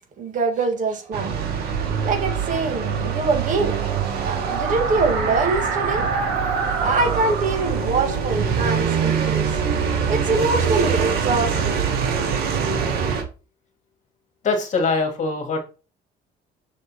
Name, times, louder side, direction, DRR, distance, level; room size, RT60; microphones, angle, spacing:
voice 1, 0.2-1.3 2.0-3.8 4.2-6.1 6.8-9.6 10.1-11.8, right 3 dB, 50° right, 1.8 m, -24 dB
sound 1, 1.1-13.2, right 6 dB, 70° right, 1.8 m, -24 dB
sound 2, 1.3-10.0, right 4 dB, 90° right, 2.0 m, -29 dB
voice 2, 14.4-15.6, left 4 dB, 45° left, 1.9 m, -22 dB
6.4 x 4.3 x 4.2 m
cardioid pair, 110°, 17 cm